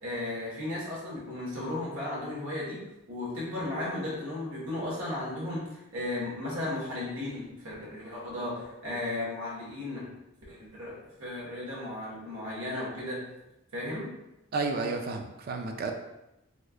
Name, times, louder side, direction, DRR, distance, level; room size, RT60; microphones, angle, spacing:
voice 1, 0.0-2.8 3.1-5.7 5.9-10.1 10.5-13.3 13.7-14.1, left 1 dB, 75° right, -5 dB, 1.4 m, -35 dB
voice 2, 14.5-15.9, right 3 dB, 45° right, 4 dB, 0.4 m, -31 dB
4.2 x 2.4 x 2.4 m, 0.92 s
head